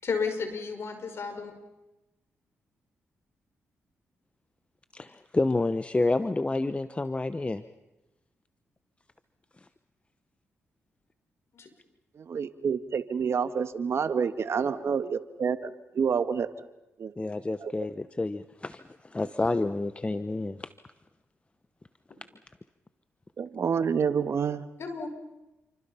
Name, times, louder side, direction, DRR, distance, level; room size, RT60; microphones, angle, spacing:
voice 1, 0.0-1.5 11.5-11.7 22.1-22.2 24.8-25.1, left 5 dB, 60° left, 5.7 m, -32 dB
voice 2, 4.9-7.6 9.6-9.7 17.2-20.7, left 2 dB, 25° left, 1.0 m, -29 dB
voice 3, 12.2-16.5 17.0-17.1 17.6-17.7 23.4-24.6, right 6 dB, 60° right, 1.6 m, -28 dB
29.0 x 25.0 x 5.8 m
supercardioid pair, 60°, 5 cm